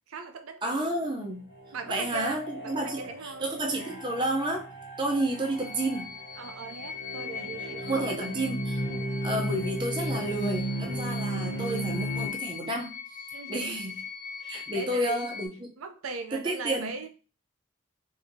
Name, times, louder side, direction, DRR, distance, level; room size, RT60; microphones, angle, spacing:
voice 1, 0.1-0.9 1.7-2.4 2.8-3.4 6.4-8.1 8.3-8.6 8.9-9.1 13.3-13.8 14.4-15.3 15.8-17.1, right 4 dB, 90° right, 0.5 m, -39 dB
voice 2, 0.6-1.4 1.8-4.7 5.0-6.1 7.6-8.8 9.2-12.9 13.5-14.0 14.5-15.7 16.3-17.0, right 1 dB, 25° right, 0.7 m, -31 dB
sound 1, 1.0-12.3, right 1 dB, 60° left, 1.1 m, -35 dB
sound 2, 5.5-15.5, left 7 dB, 40° left, 0.4 m, -41 dB
4.1 x 2.7 x 2.7 m
head